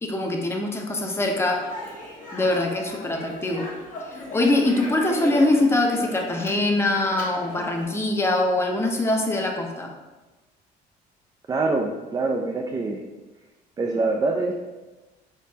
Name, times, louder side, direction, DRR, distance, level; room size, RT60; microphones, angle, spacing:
voice 1, 0.0-1.7 2.3-3.7 4.0-9.9, left 2 dB, 15° left, 2 dB, 0.6 m, -23 dB
Speech, 1.4-7.9, left 1 dB, 50° left, 1.0 m, -38 dB
voice 2, 11.5-13.0 13.8-14.5, right 3 dB, 20° right, 2 dB, 0.3 m, -24 dB
4.0 x 3.6 x 2.7 m, 1.2 s
cardioid pair, 110°, 17 cm